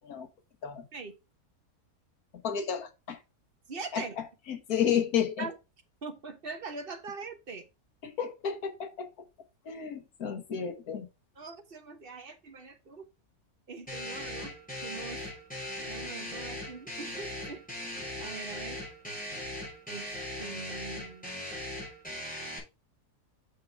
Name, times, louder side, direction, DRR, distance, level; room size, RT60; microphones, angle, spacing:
voice 1, 2.4-3.2 3.9-4.0 4.5-5.5 8.0-9.1 9.7-11.1, left 8 dB, 80° left, 1.6 m, -31 dB
voice 2, 3.7-4.2 5.4-5.5 6.0-7.7 11.4-13.0 13.7-14.5 14.8-15.3 15.9-17.6 18.2-18.8 19.9-20.1 20.4-21.6, right 4 dB, 40° right, 1.3 m, -42 dB
sound 1, 13.9-22.6, left 1 dB, 5° left, 4.3 m, -39 dB
6.6 x 6.2 x 3.5 m
omnidirectional pair, 1.6 m